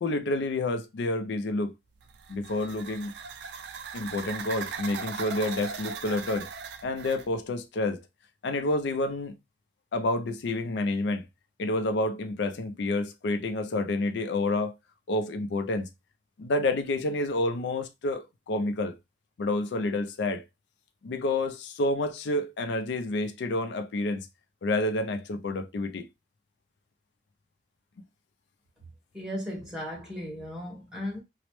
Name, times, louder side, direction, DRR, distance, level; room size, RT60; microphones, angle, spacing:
voice 1, 0.0-1.7 2.3-3.1 3.9-6.5 6.8-8.0 8.4-9.3 9.9-11.2 11.6-14.7 15.1-15.9 16.4-19.0 19.4-20.4 21.0-24.3 24.6-26.1, left 2 dB, 80° left, 0.4 m, -29 dB
sound 1, 2.0-7.3, right 6 dB, 75° right, 0.4 m, -39 dB
voice 2, 29.1-31.2, left 1 dB, 5° right, 1.2 m, -36 dB
3.0 x 2.0 x 3.0 m
head